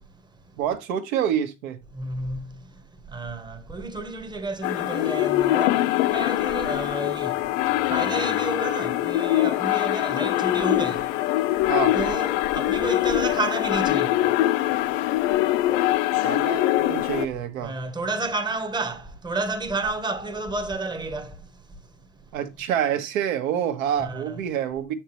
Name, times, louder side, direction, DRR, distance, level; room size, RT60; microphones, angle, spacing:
voice 1, 0.6-1.8 11.7-12.0 16.2-17.7 22.3-24.9, right 9 dB, 75° right, 1.4 m, -27 dB
voice 2, 2.0-2.5 3.1-5.8 6.1-7.3 7.9-11.0 11.9-14.3 17.6-21.3 24.0-24.4, right 2 dB, 10° right, 0.9 m, -30 dB
sound 1, 4.6-17.3, left 15 dB, 65° left, 0.7 m, -23 dB
7.1 x 5.9 x 3.0 m
supercardioid pair, 120°, 41 cm